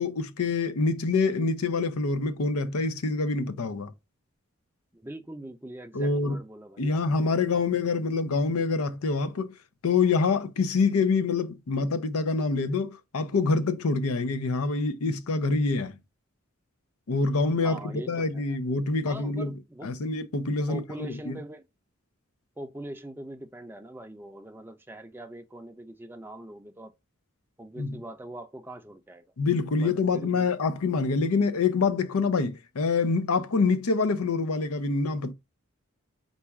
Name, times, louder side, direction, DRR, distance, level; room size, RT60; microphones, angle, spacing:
voice 1, 0.0-3.9 5.9-6.4 6.8-9.5 9.8-16.0 17.1-19.5 19.8-21.4 27.8-28.0 29.4-35.3, left 4 dB, 80° left, 0.6 m, -26 dB
voice 2, 4.9-7.5 17.6-18.6 19.1-20.0 20.7-21.6 22.6-26.9 27.6-29.2 29.8-30.5, right 1 dB, 10° right, 0.4 m, -42 dB
4.1 x 2.3 x 4.6 m
head